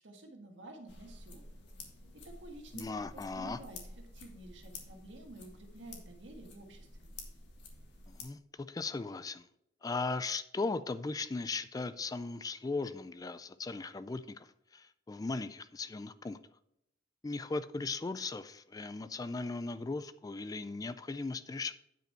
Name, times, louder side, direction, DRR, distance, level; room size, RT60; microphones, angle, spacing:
voice 1, 0.0-1.5 2.4-3.8 4.1-7.1, right 2 dB, 70° right, 3 dB, 1.7 m, -51 dB
sound 1, 0.9-8.2, left 3 dB, 65° left, 1.7 m, -51 dB
voice 2, 2.7-3.6 8.1-9.5 9.8-16.4 17.2-21.7, left 3 dB, 20° left, 13 dB, 0.3 m, -38 dB
9.1 x 5.3 x 4.4 m, 0.78 s
head